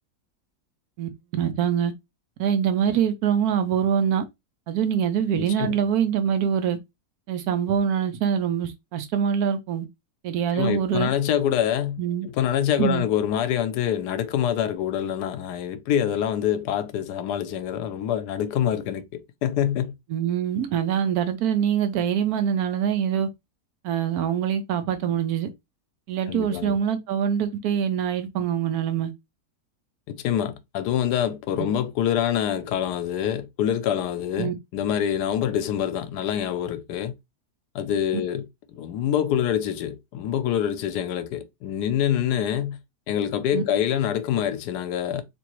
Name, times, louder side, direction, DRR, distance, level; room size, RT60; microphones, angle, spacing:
voice 1, 1.0-1.9 2.4-4.2 4.7-6.8 7.3-9.9 10.2-11.1 12.0-12.3 12.8-13.1 20.1-23.3 23.8-25.5 26.1-29.1 31.6-31.7 34.4-34.5 43.5-43.6, right 8 dB, 70° right, 1.0 m, -24 dB
voice 2, 5.4-5.8 10.5-19.9 26.3-26.8 30.1-37.1 37.7-38.5 38.8-42.8 43.1-45.2, left 10 dB, 85° left, 1.2 m, -26 dB
3.5 x 2.9 x 2.9 m
omnidirectional pair, 1.7 m